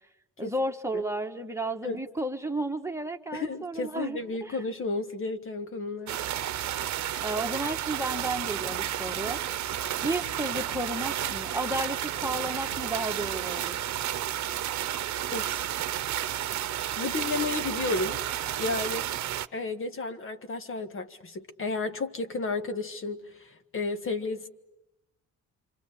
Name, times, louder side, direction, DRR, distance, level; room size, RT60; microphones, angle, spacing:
voice 1, 0.4-4.6 7.2-9.4 10.0-13.9, right 1 dB, 10° right, 4 dB, 1.7 m, -33 dB
voice 2, 3.3-6.2 15.3-15.7 17.0-18.2 18.6-19.0 19.5-24.5, left 3 dB, 45° left, 8 dB, 1.7 m, -32 dB
sound 1, 6.1-19.5, right 12 dB, 65° right, 1.0 m, -32 dB
sound 2, 8.4-13.6, left 6 dB, 65° left, 2.9 m, -52 dB
27.5 x 25.5 x 8.4 m, 0.93 s
cardioid pair, 90°, 30 cm